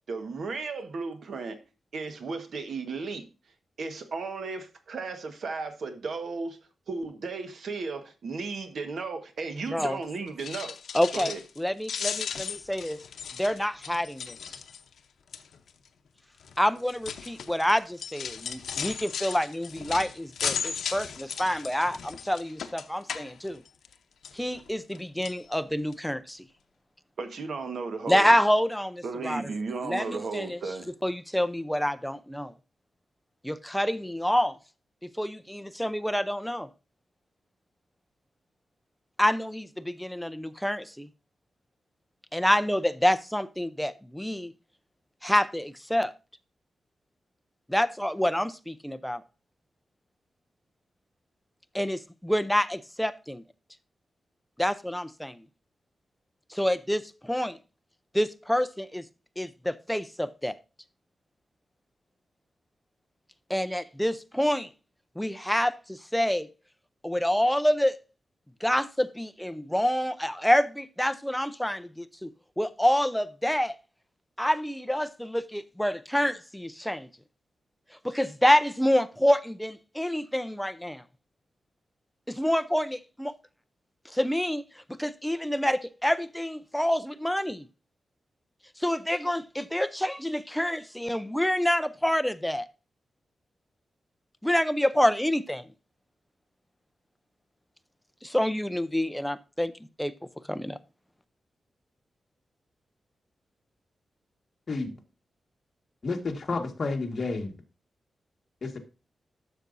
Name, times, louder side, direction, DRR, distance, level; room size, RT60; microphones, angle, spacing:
voice 1, 0.1-1.6 1.9-3.3 3.8-6.6 6.9-10.8 11.1-11.4 27.2-28.3 29.0-30.9, right 4 dB, 65° right, 1.3 m, -35 dB
voice 2, 9.7-10.0 10.9-13.0 13.3-14.4 16.6-23.6 24.3-26.5 28.1-29.4 29.8-30.6 31.0-32.5 33.4-34.6 35.0-36.7 39.2-41.1 42.3-44.5 45.2-46.1 47.7-49.2 51.7-53.4 54.6-55.4 56.5-57.6 58.1-59.1 59.4-60.6 63.5-64.7 65.2-66.5 67.0-68.0 68.6-73.7 74.4-77.1 78.0-81.0 82.3-83.3 84.1-87.7 88.8-92.7 94.4-95.7 98.2-99.7 100.0-100.1 100.5-100.8, equal, 5° left, 0.5 m, -27 dB
sound 1, 10.3-11.6 11.8-15.0 15.3-15.7 16.4-23.9 24.2-25.0 25.2-25.4 25.9-26.0 26.3-26.4, left 7 dB, 85° left, 0.7 m, -36 dB
voice 3, 106.0-107.5 108.6-108.8, left 3 dB, 40° left, 1.6 m, -30 dB
12.0 x 6.8 x 2.6 m
wide cardioid pair, 135°, 0 cm